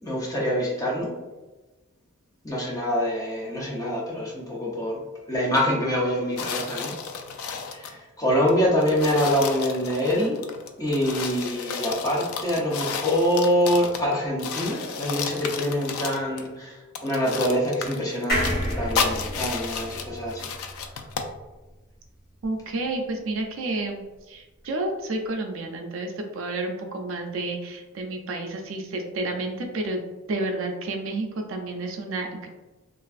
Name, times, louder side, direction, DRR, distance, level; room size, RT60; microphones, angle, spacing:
voice 1, 0.0-1.1 2.4-7.0 7.7-10.3 10.8-20.8, equal, 15° left, -4 dB, 0.6 m, -25 dB
sound 1, 6.4-8.0 8.5-8.6 8.8-14.1 14.4-16.5 17.0-21.3, left 5 dB, 85° left, 0.3 m, -32 dB
sound 2, 18.3-21.8 22.2-22.3 22.5-22.6, equal, 45° left, 1.3 m, -30 dB
voice 2, 22.4-30.0 30.3-32.5, right 2 dB, 65° right, 3 dB, 0.4 m, -30 dB
3.1 x 2.4 x 2.4 m, 1.2 s
head